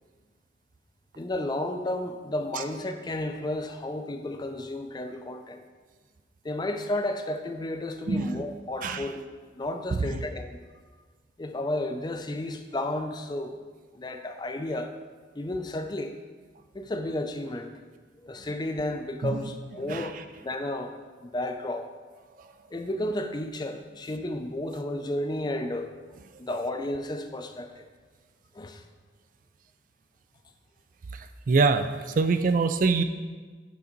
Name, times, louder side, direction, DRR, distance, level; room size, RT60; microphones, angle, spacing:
voice 1, 1.2-5.6 6.4-9.3 9.5-10.6 11.4-13.6 13.9-14.9 15.4-16.2 16.7-17.7 18.2-20.9 21.2-21.9 22.7-25.9 26.4-27.9 28.5-28.8, left 1 dB, 25° left, 6 dB, 0.5 m, -32 dB
voice 2, 8.1-8.4 8.8-9.0 10.0-10.1 19.2-19.4 19.9-20.1 31.5-31.9 32.2-33.0, right 4 dB, 45° right, 9 dB, 0.3 m, -23 dB
8.5 x 3.8 x 5.2 m, 1.4 s
head